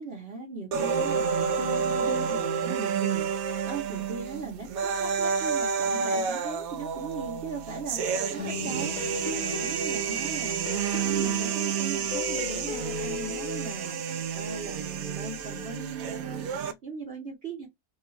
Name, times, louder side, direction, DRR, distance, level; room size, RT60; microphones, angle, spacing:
voice 1, 0.0-17.7, right 4 dB, 50° right, 0.9 m, -39 dB
sound 1, 0.7-16.7, right 6 dB, 70° right, 1.1 m, -30 dB
sound 2, 8.4-13.7, left 9 dB, 65° left, 0.9 m, -38 dB
3.1 x 2.3 x 3.9 m
omnidirectional pair, 1.6 m